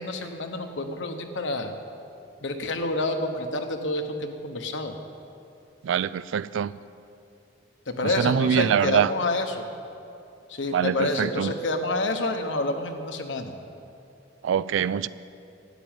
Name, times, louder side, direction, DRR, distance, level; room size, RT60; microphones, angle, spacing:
voice 1, 0.0-1.7 2.4-5.0 7.9-9.6 10.6-13.5, left 2 dB, 75° left, 6 dB, 1.2 m, -28 dB
voice 2, 5.8-6.8 8.0-9.1 10.7-11.5 14.4-15.1, right 8 dB, 80° right, 17 dB, 0.3 m, -24 dB
12.0 x 9.3 x 9.0 m, 2.7 s
head